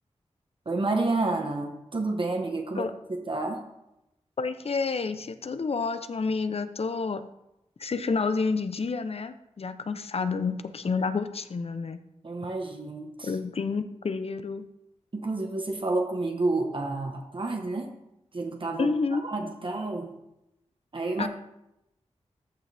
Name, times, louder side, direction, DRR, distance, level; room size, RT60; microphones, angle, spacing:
voice 1, 0.7-3.6 12.2-13.3 15.1-17.9 18.3-18.9 19.2-20.1 20.9-21.3, right 2 dB, 45° right, 3 dB, 1.1 m, -30 dB
voice 2, 4.4-7.2 7.8-12.0 13.2-14.7 18.8-19.3 21.2-21.3, left 4 dB, 55° left, 11 dB, 0.6 m, -29 dB
14.0 x 6.4 x 3.4 m, 0.87 s
wide cardioid pair, 60°, 12 cm